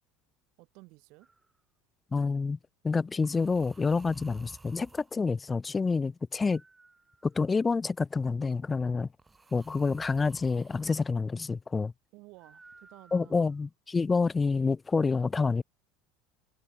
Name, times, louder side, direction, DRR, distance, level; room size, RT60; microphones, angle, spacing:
voice 1, 0.6-1.3 12.1-13.6, right 25 dB, 65° right, 7.4 m, -54 dB
sound 1, 1.2-1.5 3.2-5.1 6.5-7.6 9.2-11.0 12.4-13.6, right 3 dB, 15° right, 3.5 m, -55 dB
voice 2, 2.1-2.6 2.8-6.6 7.2-9.1 9.5-11.9 13.1-15.6, left 4 dB, 20° left, 0.3 m, -28 dB
supercardioid pair, 115°, 0 cm